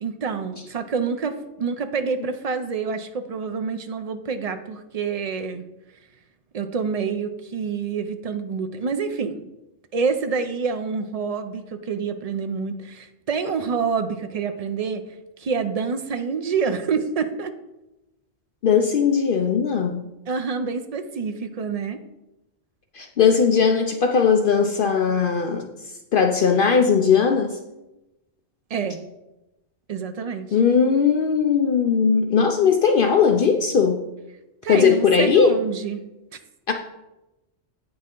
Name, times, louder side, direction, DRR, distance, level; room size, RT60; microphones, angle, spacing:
voice 1, 0.0-5.6 6.5-9.4 9.9-15.0 15.4-17.5 20.3-22.0 28.7-29.0 29.9-30.5 34.6-36.0, right 5 dB, 55° right, 8 dB, 0.4 m, -27 dB
voice 2, 18.6-20.0 22.9-25.7 26.1-27.6 30.5-34.0 34.7-35.6 36.7-36.8, left 6 dB, 60° left, 4 dB, 0.7 m, -19 dB
8.6 x 5.9 x 3.7 m, 0.97 s
omnidirectional pair, 1.2 m